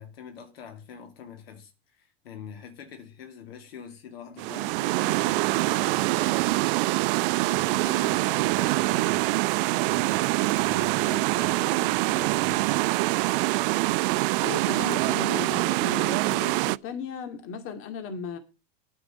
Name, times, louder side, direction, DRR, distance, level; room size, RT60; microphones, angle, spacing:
voice 1, 0.0-6.6 7.5-12.9, left 7 dB, 85° left, 2.5 m, -44 dB
sound 1, 4.4-16.8, right 22 dB, 65° right, 0.5 m, -24 dB
voice 2, 14.4-18.4, left 5 dB, 45° left, 2.4 m, -36 dB
9.6 x 6.3 x 7.8 m
hypercardioid pair, 105°, 30 cm